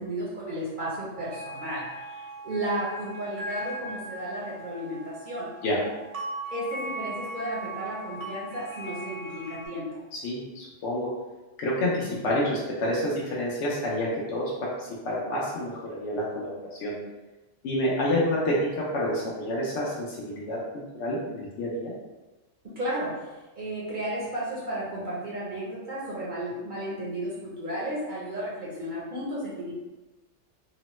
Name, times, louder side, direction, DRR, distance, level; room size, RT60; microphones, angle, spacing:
voice 1, 0.0-5.5 6.5-10.0 12.0-12.1 22.8-23.3 23.6-29.7, right 1 dB, 50° right, -7 dB, 0.7 m, -33 dB
sound 1, 1.2-9.7, right 1 dB, 85° right, 1.0 m, -39 dB
voice 2, 10.1-11.1 11.6-16.9 17.6-18.7 18.9-20.6 21.0-21.9, left 1 dB, 70° left, -5 dB, 0.9 m, -28 dB
3.0 x 2.0 x 2.9 m, 1.1 s
omnidirectional pair, 1.3 m